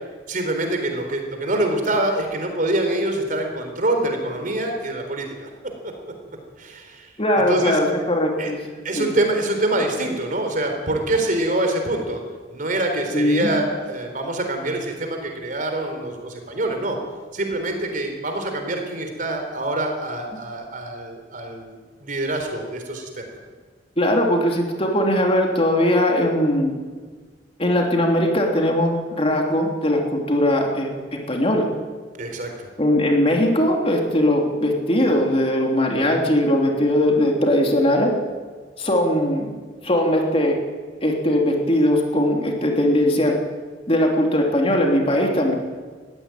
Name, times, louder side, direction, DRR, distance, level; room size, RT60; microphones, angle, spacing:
voice 1, 0.3-5.5 5.8-5.9 6.6-7.1 7.4-7.8 8.4-8.5 8.8-12.2 12.5-17.0 17.3-23.3 32.2-32.7 36.0-36.2, right 1 dB, 45° right, 4 dB, 4.0 m, -25 dB
voice 2, 7.2-8.6 8.9-9.1 13.1-13.5 24.0-26.7 27.6-31.7 32.8-38.2 38.8-39.5 39.8-40.6 41.0-43.4 43.9-45.5, left 1 dB, 30° left, 1 dB, 3.0 m, -20 dB
20.5 x 15.5 x 9.1 m, 1.5 s
head